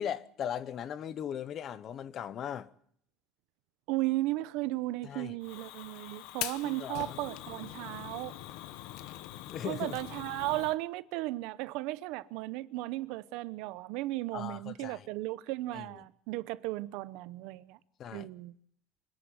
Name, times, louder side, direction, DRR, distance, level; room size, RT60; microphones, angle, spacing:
voice 1, 0.0-2.7 5.0-5.3 6.6-7.2 9.5-10.0 14.3-15.1 15.7-15.9 18.0-18.3, left 9 dB, 30° left, 0.8 m, -38 dB
voice 2, 3.9-8.3 9.6-17.8 18.1-18.5, right 18 dB, 60° right, 0.8 m, -35 dB
Fire, 5.4-10.8, left 14 dB, 60° left, 1.0 m, -43 dB
26.0 x 10.5 x 9.5 m
cardioid pair, 175°, 0 cm